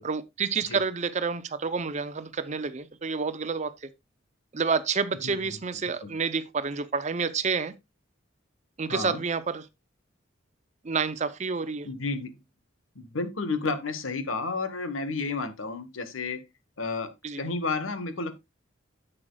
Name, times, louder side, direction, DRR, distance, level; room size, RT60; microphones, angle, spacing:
voice 1, 0.0-3.7 4.5-7.7 8.8-9.6 10.8-11.9 17.2-17.4, right 5 dB, 35° right, 0.6 m, -29 dB
voice 2, 5.2-6.1 8.9-9.2 11.8-12.4 12.9-16.4 16.8-18.4, left 3 dB, 85° left, 1.2 m, -32 dB
10.0 x 7.6 x 2.3 m
head